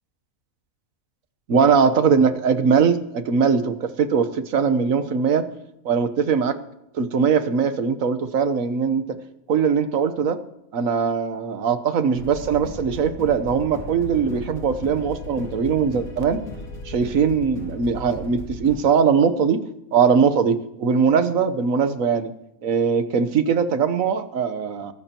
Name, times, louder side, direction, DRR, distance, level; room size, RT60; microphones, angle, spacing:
voice 1, 1.5-5.5 5.8-6.6 6.9-9.2 9.5-10.4 10.7-16.4 16.8-19.6 19.9-22.3 22.6-24.9, right 6 dB, 70° right, 10 dB, 1.4 m, -21 dB
sound 1, 12.1-18.8, left 2 dB, 85° left, 3.3 m, -36 dB
23.0 x 12.0 x 2.9 m, 0.83 s
omnidirectional pair, 1.5 m